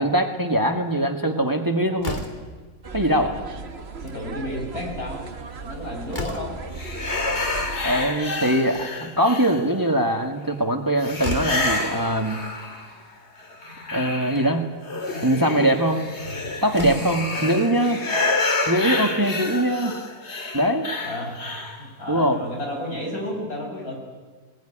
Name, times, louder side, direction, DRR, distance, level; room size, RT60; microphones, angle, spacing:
voice 1, 0.0-2.2 2.9-3.3 7.8-12.4 13.9-14.6 15.2-16.0 16.6-18.0 18.7-20.0 20.5-20.9 22.1-22.4, right 1 dB, 15° right, 5 dB, 1.5 m, -22 dB
Slam, 2.0-2.6 3.8-4.2 4.6-4.7 4.9-5.0 5.6-6.7 8.4-9.2 10.7-10.8 11.2-11.7 12.8-12.9 13.3-13.4 14.2-14.5 16.2-16.3 16.7-17.2, left 2 dB, 30° left, 2.8 m, -34 dB
sound 1, 2.8-8.1, right 4 dB, 45° right, 1.4 m, -37 dB
voice 2, 3.1-3.4 4.0-5.2 5.6-6.5 21.0-21.4 21.7-23.9, left 1 dB, 75° left, 0 dB, 6.6 m, -32 dB
sound 2, 6.7-9.9 11.0-13.0 13.4-21.8, left 3 dB, 45° left, 2.4 m, -29 dB
21.0 x 20.0 x 10.0 m, 1.4 s
omnidirectional pair, 1.6 m